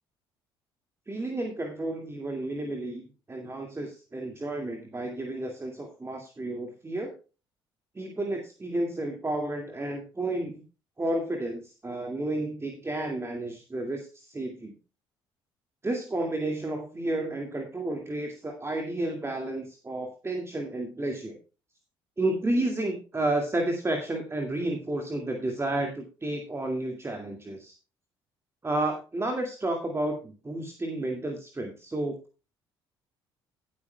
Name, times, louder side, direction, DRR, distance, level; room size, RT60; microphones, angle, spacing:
voice 1, 1.1-7.1 7.9-10.6 11.0-14.8 15.8-21.4 22.2-27.7 28.6-32.2, right 1 dB, 20° right, 3 dB, 2.2 m, -31 dB
17.0 x 8.6 x 2.2 m, 0.33 s
figure-of-eight pair, 50°, 13 cm